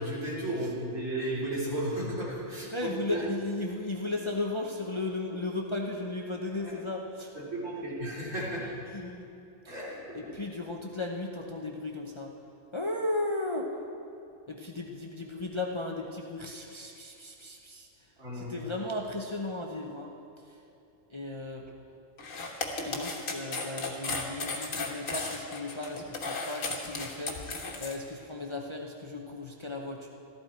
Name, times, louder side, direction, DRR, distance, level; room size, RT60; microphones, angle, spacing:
voice 1, 0.0-2.7 3.1-3.2 6.6-6.7 7.4-8.8 9.7-10.3 18.2-18.5, right 1 dB, 70° right, -7 dB, 3.8 m, -34 dB
voice 2, 2.5-7.3 8.9-9.3 9.6-9.9 10.1-12.3 12.7-13.7 14.5-17.9 18.3-20.1 21.1-21.7 22.8-30.1, left 2 dB, 25° left, 0 dB, 0.8 m, -35 dB
sound 1, 22.2-27.9, left 3 dB, 85° left, 1.7 m, -35 dB
14.5 x 13.5 x 4.5 m, 2.7 s
omnidirectional pair, 1.4 m